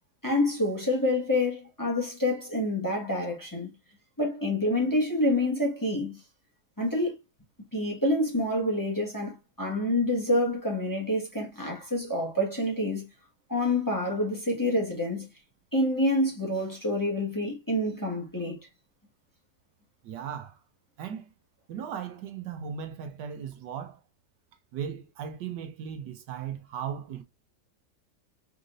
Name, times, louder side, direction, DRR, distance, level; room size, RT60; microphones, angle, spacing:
voice 1, 0.2-3.7 4.2-6.2 6.8-7.1 7.7-13.1 13.5-15.3 15.7-18.6, left 1 dB, 10° left, 1.4 m, -27 dB
voice 2, 20.0-20.6 21.0-21.3 21.7-24.0 24.7-27.2, right 8 dB, 75° right, 1.3 m, -37 dB
4.2 x 3.8 x 2.6 m
omnidirectional pair, 1.9 m